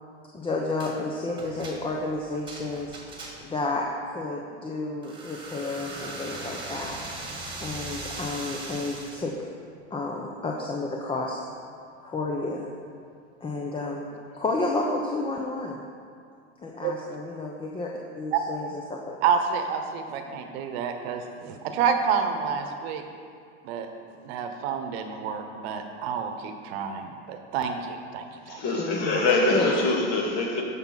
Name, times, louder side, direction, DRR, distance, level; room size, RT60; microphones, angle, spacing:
voice 1, 0.3-3.0 3.4-7.0 7.6-9.3 9.9-11.4 12.0-12.7 13.4-15.8 16.6-19.2 28.8-29.2 29.5-29.8, left 2 dB, 15° left, -1 dB, 0.8 m, -31 dB
sound 1, 0.8-1.0 1.4-3.6 5.0-9.3, right 2 dB, 15° right, 1.7 m, -39 dB
voice 2, 19.2-23.0 23.6-23.9 24.2-28.6, right 6 dB, 60° right, 6 dB, 1.1 m, -29 dB
voice 3, 28.5-30.6, left 2 dB, 45° left, 0 dB, 2.2 m, -24 dB
13.5 x 5.9 x 4.1 m, 2.3 s
hypercardioid pair, 115°, 35 cm